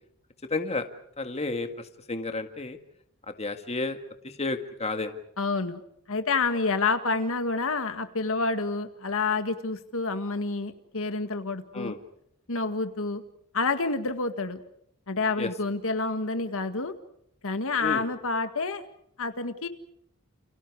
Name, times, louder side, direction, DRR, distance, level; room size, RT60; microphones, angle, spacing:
voice 1, 0.5-0.9 1.2-1.7 2.1-2.8 3.3-4.0 4.2-5.2 11.7-12.0 15.4-15.5 17.8-18.0, left 3 dB, 30° left, 6 dB, 1.9 m, -31 dB
voice 2, 5.4-5.8 6.1-12.0 12.5-13.2 13.5-14.6 15.1-16.9 17.4-18.8 19.2-19.7, left 3 dB, 65° left, 8 dB, 1.9 m, -28 dB
30.0 x 29.5 x 4.9 m, 0.71 s
head